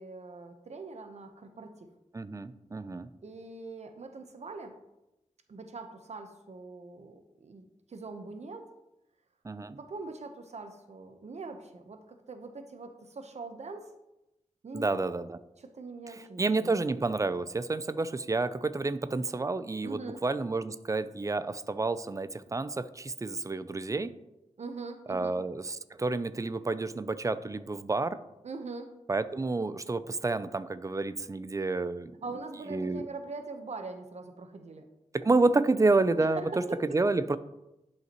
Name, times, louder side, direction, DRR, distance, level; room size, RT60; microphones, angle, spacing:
voice 1, 0.0-1.9 3.2-4.7 5.5-8.7 9.6-12.0 12.3-13.9 14.6-15.2 15.6-16.7 19.8-20.2 24.6-25.4 28.4-28.9 32.2-34.9 36.3-37.0, right 3 dB, 65° right, 6 dB, 0.9 m, -42 dB
voice 2, 2.1-3.1 9.4-9.8 14.7-15.4 16.4-24.1 25.1-28.2 29.1-32.1 32.7-33.0 35.1-36.4 36.9-37.4, right 3 dB, 25° right, 14 dB, 0.5 m, -29 dB
10.5 x 5.7 x 3.0 m, 0.93 s
cardioid pair, 60°, 12 cm